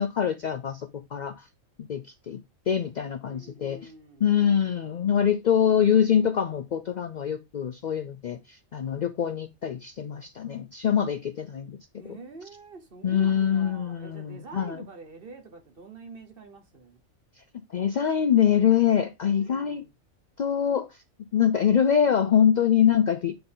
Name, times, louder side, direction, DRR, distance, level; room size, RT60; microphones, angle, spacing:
voice 1, 0.0-1.5 1.9-2.4 2.7-3.8 4.2-12.2 13.0-14.8 17.7-19.8 20.4-21.0 21.3-23.4, left 8 dB, 85° left, 0.4 m, -24 dB
voice 2, 3.2-4.3 11.9-17.0 19.4-19.9, right 3 dB, 45° right, 1.3 m, -46 dB
8.6 x 3.8 x 3.8 m
omnidirectional pair, 1.4 m